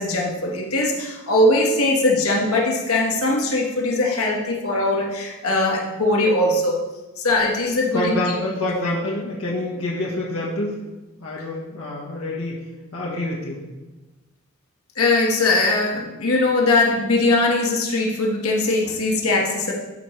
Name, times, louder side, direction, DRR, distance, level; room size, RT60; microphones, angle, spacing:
voice 1, 0.0-6.8 7.2-8.2 14.9-19.7, left 2 dB, 85° left, -1 dB, 1.5 m, -20 dB
voice 2, 7.9-10.7 11.2-12.6 12.9-13.6, left 1 dB, 65° left, -4 dB, 1.3 m, -26 dB
12.5 x 5.0 x 3.2 m, 1.1 s
head